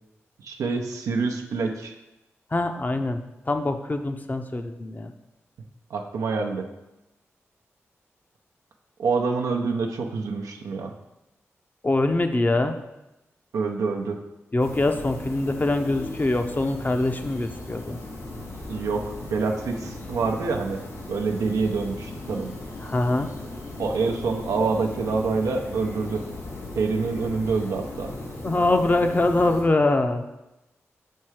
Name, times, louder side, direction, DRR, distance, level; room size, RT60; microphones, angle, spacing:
voice 1, 0.4-1.9 5.9-6.7 9.0-10.9 13.5-14.2 18.7-20.8 21.1-22.5 23.8-26.2 26.8-28.1, right 4 dB, 85° right, 3 dB, 0.6 m, -26 dB
voice 2, 2.5-5.1 11.8-12.7 14.5-18.0 22.8-23.3 28.4-30.2, left 2 dB, 35° left, 6 dB, 0.6 m, -23 dB
sound 1, 14.6-29.6, left 2 dB, 75° left, 2.3 m, -38 dB
5.6 x 4.6 x 4.7 m, 0.95 s
cardioid pair, 45°, 5 cm